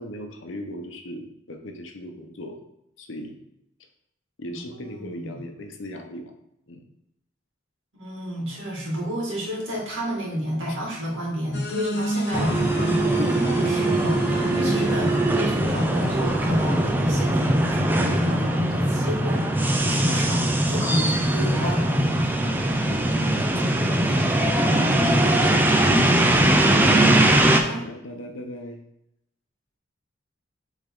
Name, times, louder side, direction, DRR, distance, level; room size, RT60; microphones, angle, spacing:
voice 1, 0.0-2.6 3.0-3.4 4.4-6.3 6.7-6.8 10.7-10.8 14.1-14.6 20.9-21.1 22.7-23.7 24.2-25.7 27.7-28.8, left 1 dB, 85° left, 5 dB, 0.9 m, -38 dB
voice 2, 4.5-5.5 7.9-22.5 25.1-25.5 27.0-27.8, equal, 90° right, -3 dB, 2.2 m, -30 dB
sound 1, 11.5-16.9, equal, 55° left, 0.8 m, -32 dB
sound 2, 12.3-27.6, right 1 dB, 10° right, 0.4 m, -21 dB
7.2 x 3.6 x 3.7 m, 0.80 s
head